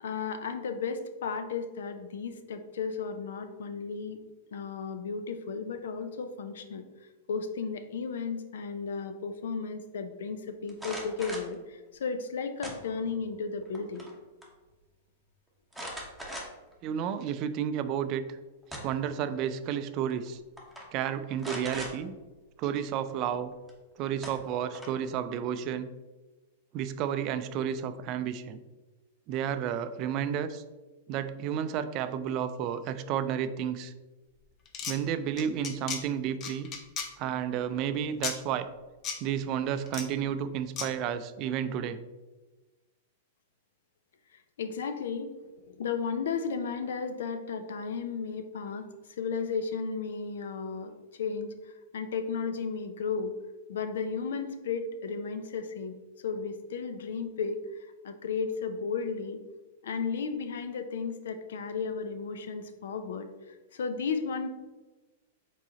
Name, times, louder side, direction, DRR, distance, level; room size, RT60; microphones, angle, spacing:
voice 1, 0.0-4.2 4.5-6.8 7.3-14.1 44.6-45.3 45.7-48.9 49.2-50.9 51.2-51.5 51.9-53.3 53.7-56.0 56.2-57.6 58.0-59.4 59.8-63.3 63.7-64.5, left 5 dB, 80° left, 8 dB, 0.5 m, -34 dB
sound 1, 10.7-11.5 12.6-13.2 13.6-14.2 14.4-14.5 15.7-16.7 17.3-17.4 18.4-19.1 20.1-20.3 20.6-20.8 21.4-21.9 23.7-23.8 24.2-25.1, equal, ahead, 1.0 m, -40 dB
voice 2, 16.8-18.2 18.8-20.4 20.9-22.1 22.6-23.5 24.0-25.9 26.7-28.6 29.3-30.6 31.1-33.9 34.9-36.7 37.2-38.7 39.2-42.0, right 9 dB, 45° right, 10 dB, 0.4 m, -31 dB
sound 2, 34.6-34.9 35.4-36.0 36.4-37.1 38.2-38.3 39.0-39.2 39.9-40.0 40.8-40.9, left 6 dB, 35° left, 0.7 m, -34 dB
4.7 x 3.9 x 2.9 m, 1.2 s
hypercardioid pair, 125°, 0 cm